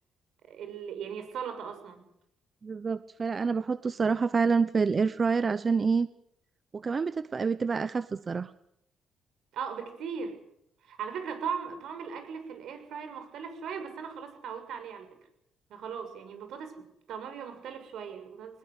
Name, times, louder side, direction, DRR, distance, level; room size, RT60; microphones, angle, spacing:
voice 1, 0.5-2.0 9.5-10.4 10.8-15.1 15.7-18.6, right 6 dB, 75° right, 8 dB, 6.7 m, -38 dB
voice 2, 2.6-6.1 6.7-8.5, right 5 dB, 35° right, 14 dB, 0.8 m, -27 dB
21.5 x 20.5 x 8.3 m, 0.78 s
cardioid pair, 90°, 0 cm